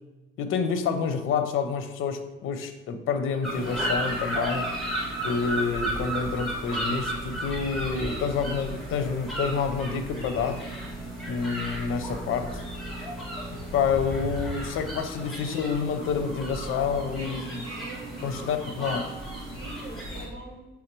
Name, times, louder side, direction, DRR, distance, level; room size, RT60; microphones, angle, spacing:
voice 1, 0.4-4.7 5.2-10.9 11.3-12.5 13.7-17.6 18.2-19.0, left 6 dB, 80° left, 8 dB, 0.7 m, -28 dB
sound 1, 3.4-20.2, right 1 dB, ahead, 1.8 m, -34 dB
voice 2, 8.1-8.5 17.1-20.7, right 2 dB, 35° right, -6 dB, 2.0 m, -42 dB
6.3 x 3.5 x 4.5 m, 1.1 s
cardioid pair, 155°, 21 cm